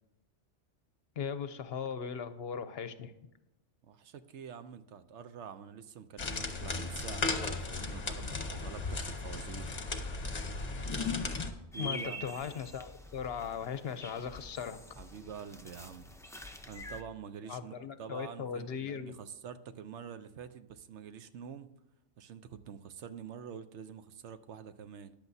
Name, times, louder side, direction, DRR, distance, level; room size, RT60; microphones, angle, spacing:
voice 1, 1.2-3.1 11.8-14.8 17.5-19.1, left 7 dB, 65° left, 11 dB, 0.8 m, -38 dB
voice 2, 3.8-9.7 11.7-12.2 15.0-16.1 16.7-21.7 22.2-25.1, right 7 dB, 70° right, 11 dB, 0.9 m, -46 dB
sound 1, 6.2-11.5, left 3 dB, 35° left, 0.9 m, -36 dB
sound 2, 11.7-17.0, left 1 dB, 5° left, 0.3 m, -46 dB
14.0 x 10.5 x 2.7 m, 0.92 s
omnidirectional pair, 1.2 m